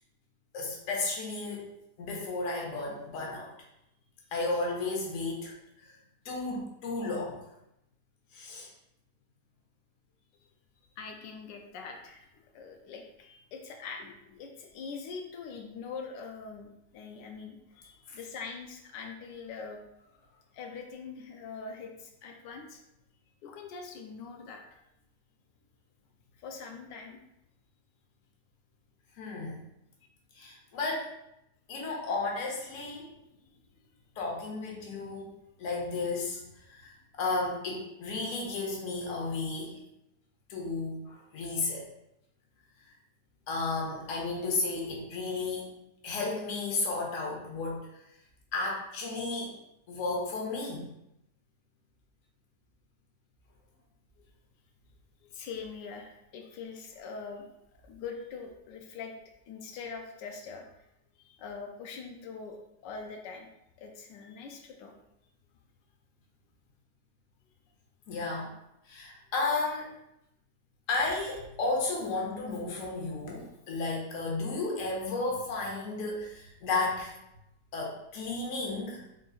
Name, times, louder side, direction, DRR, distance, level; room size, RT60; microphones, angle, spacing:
voice 1, 0.5-3.5 4.3-5.5 5.8-5.9 6.2-7.4 8.3-8.7 18.1-18.2 29.2-29.6 30.4-31.1 31.7-33.1 34.2-35.3 35.6-36.4 36.7-36.9 37.2-39.8 40.5-41.9 43.5-45.6 46.0-47.9 48.5-49.5 49.9-50.9 68.1-68.5 68.9-69.9 70.9-77.1 77.7-79.0, left 3 dB, 55° left, -2 dB, 1.2 m, -33 dB
voice 2, 11.0-19.8 20.5-22.8 23.4-24.8 26.4-27.2 54.2-54.3 55.2-57.5 57.8-59.1 59.5-60.6 61.2-63.5 63.8-64.9, left 5 dB, 85° left, 3 dB, 1.2 m, -43 dB
3.8 x 3.7 x 2.4 m, 0.83 s
omnidirectional pair, 1.8 m